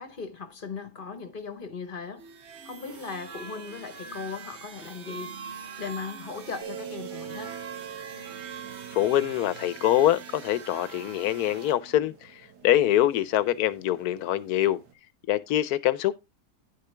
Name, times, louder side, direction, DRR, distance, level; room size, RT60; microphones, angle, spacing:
voice 1, 0.0-2.3 2.6-7.5, left 5 dB, 40° left, 1.0 m, -38 dB
sound 1, 2.2-11.8, right 6 dB, 50° right, 1.1 m, -43 dB
sound 2, 6.6-14.9, right 8 dB, 80° right, 1.9 m, -45 dB
voice 2, 8.9-12.3 12.6-14.8 15.3-16.1, left 13 dB, 75° left, 1.1 m, -24 dB
10.5 x 6.8 x 3.3 m
omnidirectional pair, 1.7 m